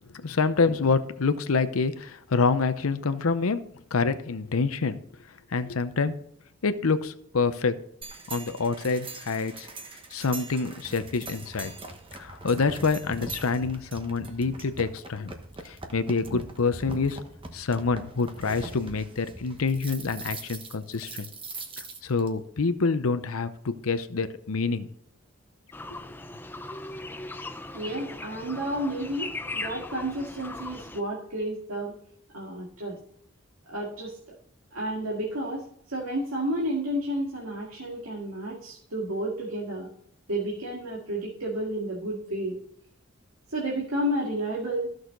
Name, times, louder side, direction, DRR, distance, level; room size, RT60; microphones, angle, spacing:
voice 1, 0.1-3.6 3.9-5.0 5.5-6.2 6.6-7.8 8.3-9.7 10.1-11.7 12.1-15.3 15.6-17.2 17.5-21.3 22.0-24.9, left 4 dB, 90° left, 11 dB, 0.7 m, -27 dB
sound 1, 8.0-22.3, right 3 dB, 25° right, 1.0 m, -41 dB
sound 2, 25.7-31.0, left 2 dB, 10° left, 0.5 m, -38 dB
voice 2, 27.7-32.0 32.3-33.0 33.7-34.2 34.7-39.9 40.3-42.6 43.5-44.9, right 1 dB, 85° right, -4 dB, 2.2 m, -31 dB
14.5 x 6.4 x 3.9 m, 0.69 s
head